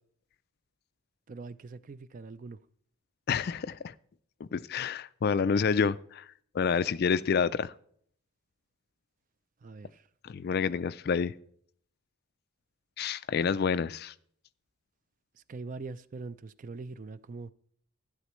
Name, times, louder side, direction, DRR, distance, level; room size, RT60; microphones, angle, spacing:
voice 1, 1.3-2.6 9.6-10.0 15.5-17.5, right 3 dB, 35° right, 0.3 m, -42 dB
voice 2, 3.3-3.9 4.5-6.3 6.5-7.7 10.2-11.3 13.0-14.1, left 6 dB, 45° left, 0.3 m, -28 dB
11.5 x 11.5 x 3.0 m
head